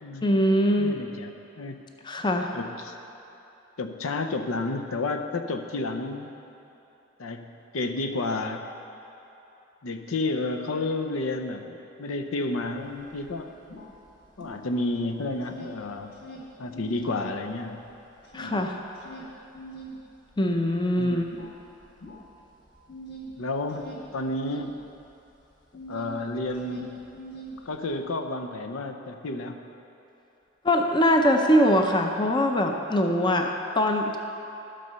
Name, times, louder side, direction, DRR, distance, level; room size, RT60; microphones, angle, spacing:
voice 1, 0.2-1.0 2.0-2.5 18.3-18.8 20.4-21.3 30.6-34.2, equal, 20° left, 3 dB, 0.5 m, -22 dB
voice 2, 0.8-1.8 2.5-2.9 3.8-6.3 7.2-8.7 9.8-13.5 14.4-16.1 16.6-17.8 18.4-18.6 21.0-21.3 23.4-23.9 24.1-24.8 25.9-27.0 27.7-29.7, left 2 dB, 85° left, 6 dB, 0.7 m, -31 dB
sound 1, 12.6-12.7 13.0-15.0 15.3-17.1 17.5-26.2 26.4-28.0, right 2 dB, 50° left, 1.6 m, -43 dB
12.5 x 5.4 x 6.8 m, 2.9 s
head